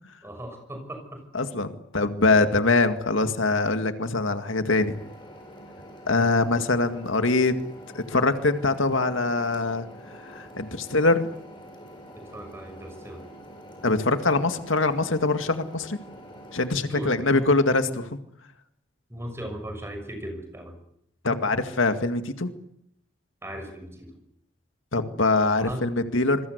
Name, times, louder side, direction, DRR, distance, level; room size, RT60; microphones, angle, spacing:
voice 1, 0.2-1.2 12.1-13.2 16.9-17.4 19.1-20.8 23.4-24.1 25.6-25.8, right 1 dB, 15° right, 6 dB, 6.2 m, -37 dB
voice 2, 1.3-5.0 6.1-7.6 7.9-9.9 10.2-11.3 13.8-16.0 16.5-18.1 21.2-22.5 24.9-26.4, left 3 dB, 85° left, 8 dB, 2.1 m, -23 dB
sound 1, 4.7-16.7, equal, 25° left, 7.7 m, -46 dB
27.0 x 22.5 x 8.2 m, 0.74 s
head